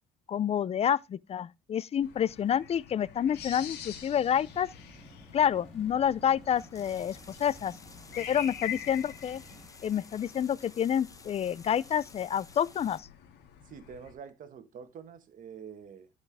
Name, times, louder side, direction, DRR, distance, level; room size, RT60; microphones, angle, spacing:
voice 1, 0.3-4.7 5.3-7.7 8.2-9.4 9.8-13.1, left 9 dB, 35° left, 0.5 m, -28 dB
sound 1, 2.0-14.1, left 9 dB, 90° left, 2.4 m, -46 dB
sound 2, 3.2-9.7, equal, 5° left, 6.9 m, -53 dB
sound 3, 6.4-13.0, left 4 dB, 20° left, 1.4 m, -53 dB
voice 2, 13.6-16.1, right 7 dB, 50° right, 1.5 m, -47 dB
11.5 x 5.7 x 3.4 m
cardioid pair, 110°, 17 cm